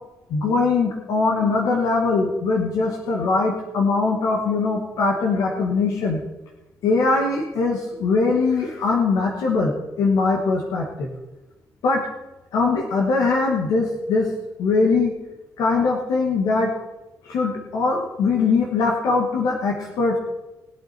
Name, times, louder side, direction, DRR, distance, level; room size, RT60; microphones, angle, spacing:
voice 1, 0.3-6.2 6.8-11.1 11.8-12.0 12.5-14.3 14.6-15.1 15.6-16.7 17.2-20.2, left 4 dB, 85° left, -1 dB, 2.3 m, -21 dB
21.0 x 8.4 x 4.6 m, 1.1 s
cardioid pair, 115°, 6 cm